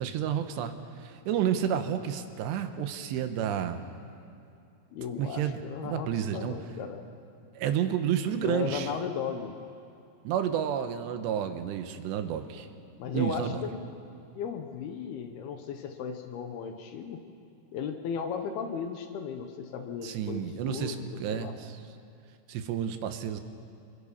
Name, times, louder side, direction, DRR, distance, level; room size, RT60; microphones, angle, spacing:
voice 1, 0.0-3.9 5.2-6.5 7.6-8.9 10.2-12.7 13.1-13.6 20.0-21.8 22.5-23.4, right 9 dB, 80° right, 8 dB, 3.1 m, -30 dB
voice 2, 4.9-7.0 8.4-9.5 13.0-13.8 14.3-17.2 17.7-21.5, left 6 dB, 70° left, 6 dB, 2.7 m, -36 dB
26.5 x 21.0 x 5.6 m, 2.6 s
omnidirectional pair, 5.1 m